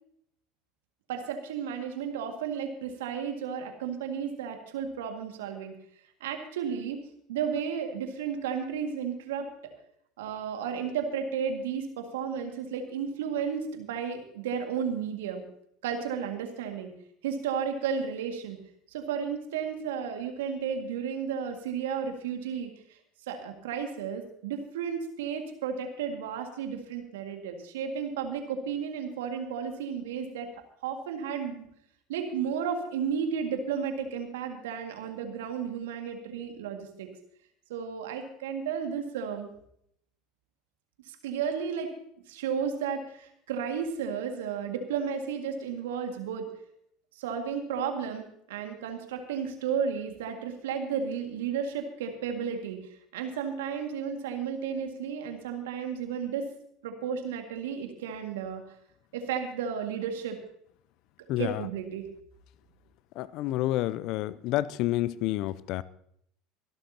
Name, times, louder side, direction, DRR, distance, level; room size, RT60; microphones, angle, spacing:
voice 1, 1.1-5.7 6.2-7.0 7.3-9.5 10.2-15.4 15.8-16.9 17.2-18.6 18.9-22.7 23.3-31.7 32.1-37.1 37.7-39.5 41.1-41.9 42.3-46.5 47.2-52.8 53.1-56.4 56.8-58.6 59.1-60.4 61.4-62.0, right 7 dB, 75° right, 2.1 m, -33 dB
voice 2, 61.3-61.7 63.2-65.8, left 15 dB, 55° left, 0.5 m, -29 dB
24.0 x 12.0 x 2.9 m
hypercardioid pair, 75°, 0 cm